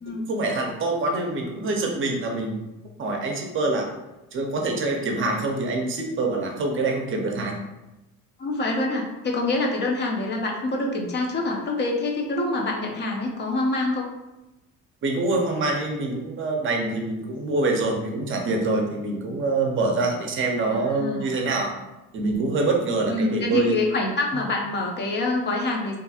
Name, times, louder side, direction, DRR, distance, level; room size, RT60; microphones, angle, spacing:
voice 1, 0.3-2.6 3.0-3.9 4.3-7.6 15.0-21.7 22.1-23.8, right 2 dB, 40° right, 1 dB, 0.6 m, -25 dB
voice 2, 8.4-14.1 20.7-21.3 23.1-26.0, left 2 dB, 35° left, 0 dB, 0.5 m, -26 dB
2.6 x 2.6 x 2.3 m, 0.97 s
cardioid pair, 110°, 30 cm